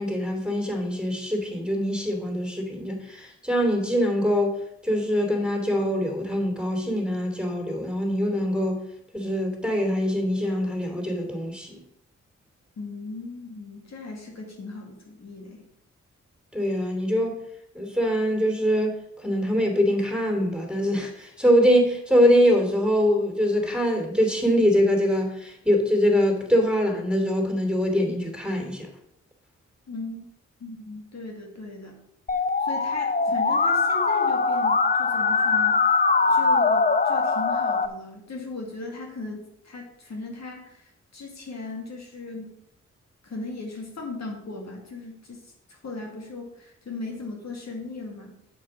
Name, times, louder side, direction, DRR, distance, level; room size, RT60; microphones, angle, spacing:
voice 1, 0.0-4.6 4.8-8.8 9.1-11.8 16.5-17.4 17.7-18.9 19.2-28.9, equal, 5° right, 2 dB, 3.0 m, -23 dB
voice 2, 12.8-15.7 29.9-30.3 30.6-32.0 32.6-42.6 43.2-48.4, left 3 dB, 60° left, 1 dB, 2.2 m, -38 dB
Musical instrument, 32.3-37.9, left 4 dB, 30° left, 0.7 m, -22 dB
7.4 x 6.5 x 5.9 m, 0.78 s
supercardioid pair, 50°, 30 cm